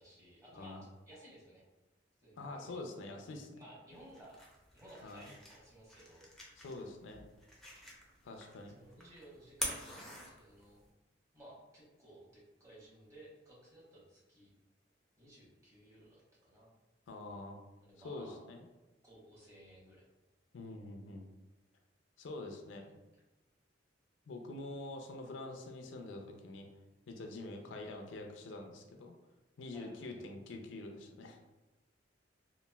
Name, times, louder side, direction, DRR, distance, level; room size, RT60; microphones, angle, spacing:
voice 1, 0.0-1.6 2.2-2.8 3.5-4.3 4.7-6.3 8.7-10.8 11.3-14.5 15.2-16.7 17.8-18.4 19.0-20.1 22.6-22.7 27.6-27.9 29.7-30.2, right 1 dB, 15° right, -6 dB, 1.0 m, -57 dB
voice 2, 2.4-3.5 5.0-5.3 6.6-7.2 8.2-8.8 17.1-17.6 18.0-18.6 20.5-21.2 22.2-22.9 24.3-26.7 27.1-29.1 29.6-31.4, left 2 dB, 85° left, 4 dB, 0.4 m, -45 dB
sound 1, 3.9-10.9, left 1 dB, ahead, 0.5 m, -47 dB
3.0 x 2.4 x 2.2 m, 1.1 s
head